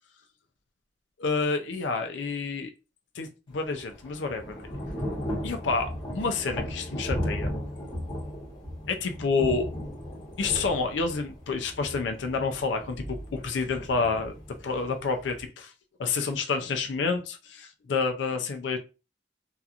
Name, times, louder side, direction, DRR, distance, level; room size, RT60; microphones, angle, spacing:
voice 1, 1.2-2.7 3.1-4.7 5.4-7.5 8.9-9.7 10.4-14.3 14.6-15.7 16.0-18.8, left 4 dB, 75° left, 0.4 m, -29 dB
Thunder / Rain, 3.5-15.5, equal, 25° left, 1.2 m, -36 dB
2.8 x 2.4 x 2.4 m
head